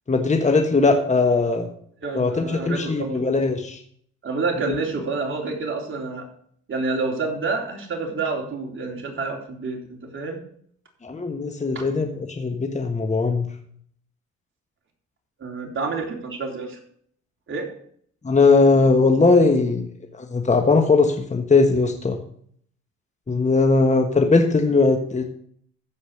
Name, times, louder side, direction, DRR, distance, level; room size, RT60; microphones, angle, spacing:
voice 1, 0.1-1.7 2.1-3.8 11.0-13.5 18.2-19.9 20.1-22.2 23.3-25.2, left 3 dB, 25° left, 4 dB, 1.4 m, -19 dB
voice 2, 2.0-3.4 4.2-6.2 6.7-10.4 11.7-11.8 15.4-16.8 17.5-17.7, right 3 dB, 40° right, 1 dB, 3.6 m, -28 dB
14.5 x 5.3 x 6.5 m, 0.62 s
cardioid pair, 90°, 30 cm